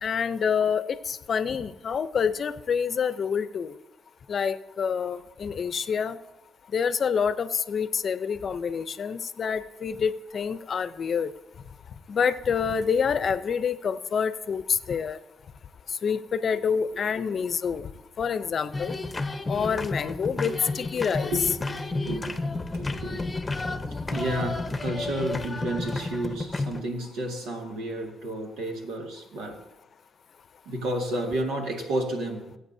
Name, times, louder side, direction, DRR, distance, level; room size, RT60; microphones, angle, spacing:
voice 1, 0.0-3.7 4.3-6.2 6.7-11.3 12.1-15.2 16.0-17.9 18.2-19.0 19.5-21.3, left 6 dB, 50° left, 12 dB, 0.6 m, -27 dB
sound 1, 18.7-26.8, left 3 dB, 20° left, 0.8 m, -31 dB
voice 2, 21.2-22.4 22.7-23.3 24.1-29.6 30.7-32.5, right 1 dB, 90° right, 1 dB, 1.9 m, -31 dB
20.0 x 7.9 x 2.7 m, 0.97 s
cardioid pair, 90°, 0 cm